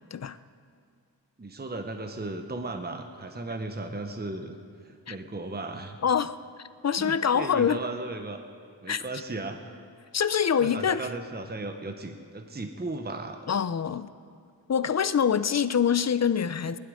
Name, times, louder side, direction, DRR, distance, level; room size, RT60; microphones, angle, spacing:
voice 1, 1.4-4.6 4.8-6.0 7.0-8.4 8.8-9.6 10.6-13.4, right 2 dB, 20° right, 5 dB, 0.9 m, -36 dB
voice 2, 6.0-6.4 6.8-7.8 8.9-9.0 10.1-11.1 13.5-14.1 14.7-16.8, left 7 dB, 40° left, 15 dB, 0.5 m, -25 dB
20.0 x 11.5 x 5.0 m, 2.4 s
wide cardioid pair, 90°, 43 cm